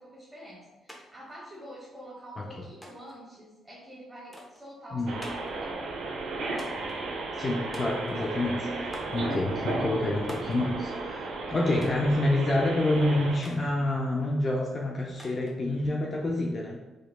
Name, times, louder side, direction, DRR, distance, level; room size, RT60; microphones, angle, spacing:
voice 1, 0.0-6.0, equal, 15° right, -7 dB, 1.0 m, -47 dB
sound 1, 0.9-1.0 1.3-2.0 2.8-3.2 4.3-4.6 5.2-5.6 6.6-7.0 7.7-8.3 8.9-9.2 10.3-10.6 11.8-12.1 13.4-13.6 15.2-15.6, equal, 5° left, 0.8 m, -44 dB
sound 2, 5.1-13.4, right 3 dB, 75° right, 0.7 m, -34 dB
voice 2, 7.4-8.7 9.1-16.8, left 1 dB, 35° left, -1 dB, 0.5 m, -27 dB
4.3 x 3.0 x 2.2 m, 1.1 s
cardioid pair, 90°, 0 cm